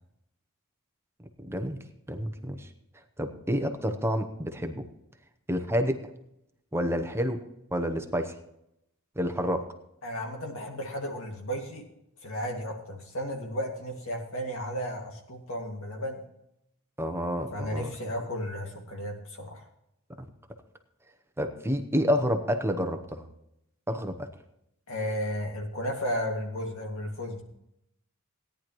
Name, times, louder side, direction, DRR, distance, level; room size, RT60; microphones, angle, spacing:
voice 1, 1.4-1.8 2.1-2.7 3.2-4.8 5.5-6.0 6.7-7.4 7.7-8.3 9.2-9.7 17.0-17.9 21.4-23.3 23.9-24.3, equal, 10° right, 6 dB, 0.8 m, -29 dB
voice 2, 10.0-11.9 12.2-16.3 17.5-19.6 24.9-27.4, equal, 70° left, 2 dB, 2.2 m, -34 dB
17.0 x 10.5 x 3.1 m, 0.80 s
head